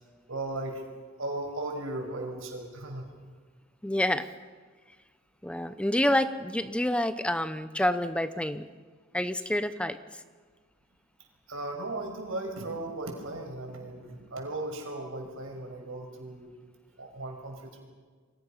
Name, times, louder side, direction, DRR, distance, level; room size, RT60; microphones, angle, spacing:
voice 1, 0.3-0.8 1.2-3.1 11.5-16.5 17.0-17.8, right 2 dB, 80° right, 2 dB, 5.9 m, -36 dB
voice 2, 3.8-4.3 5.4-8.6 9.1-10.0, left 1 dB, 5° left, 11 dB, 0.7 m, -28 dB
29.5 x 24.0 x 5.8 m, 1.5 s
head